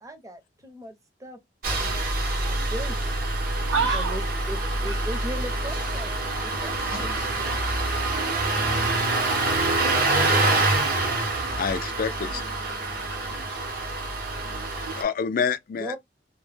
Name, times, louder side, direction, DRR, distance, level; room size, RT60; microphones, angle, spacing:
voice 1, 0.0-3.1 3.9-7.6 15.8-16.0, right 1 dB, 20° right, 0.6 m, -39 dB
Engine starting, 1.6-15.0, right 2 dB, 55° right, 0.7 m, -26 dB
voice 2, 3.7-4.2 4.8-5.0 10.8-11.6 12.5-13.7 14.3-15.1, right 5 dB, 75° right, 0.4 m, -32 dB
voice 3, 6.9-7.3 11.6-12.4 14.9-16.0, left 6 dB, 50° left, 0.4 m, -28 dB
2.1 x 2.0 x 3.2 m
head